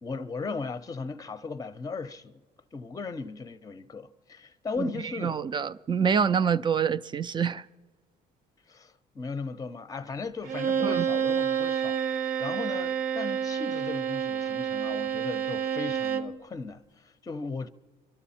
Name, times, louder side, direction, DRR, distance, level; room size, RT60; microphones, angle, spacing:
voice 1, 0.0-2.4 2.7-5.5 8.7-17.7, left 4 dB, 20° left, 0.7 m, -37 dB
voice 2, 5.2-7.6 10.8-11.1, right 7 dB, 25° right, 0.4 m, -26 dB
Bowed string instrument, 10.4-16.4, right 8 dB, 55° right, 0.8 m, -29 dB
26.5 x 12.0 x 4.2 m
cardioid pair, 110°, 17 cm